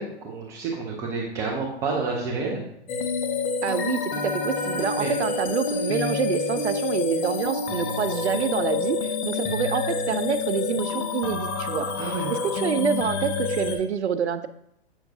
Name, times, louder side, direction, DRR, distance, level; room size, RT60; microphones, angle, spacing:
voice 1, 0.0-2.6 5.0-5.1 12.0-12.3, right 4 dB, 10° right, -2 dB, 0.3 m, -29 dB
sound 1, 2.9-13.8, left 4 dB, 25° left, 0.8 m, -28 dB
voice 2, 3.6-14.5, right 7 dB, 80° right, 12 dB, 0.6 m, -27 dB
8.0 x 5.7 x 2.7 m, 0.77 s
hypercardioid pair, 120°, 33 cm